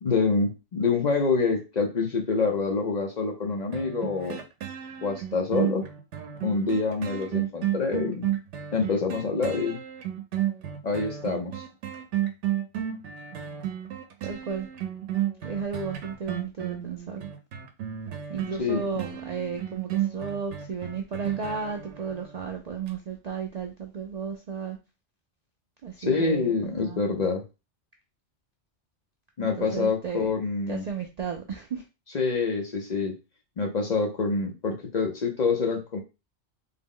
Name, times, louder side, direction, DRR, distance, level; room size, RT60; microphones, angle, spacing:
voice 1, 0.0-4.4 5.0-5.8 6.4-8.3 8.7-9.8 10.8-11.6 18.6-18.8 26.0-27.4 29.4-30.8 32.1-33.1 33.6-36.0, left 4 dB, 50° left, 0.6 m, -26 dB
sound 1, 3.7-22.4 22.9-23.0, right 11 dB, 85° right, 0.9 m, -32 dB
voice 2, 14.2-14.7 15.4-17.2 18.3-24.8 25.8-27.0 29.6-30.3 30.7-31.8, right 6 dB, 60° right, 0.4 m, -34 dB
3.6 x 2.0 x 3.7 m
omnidirectional pair, 1.2 m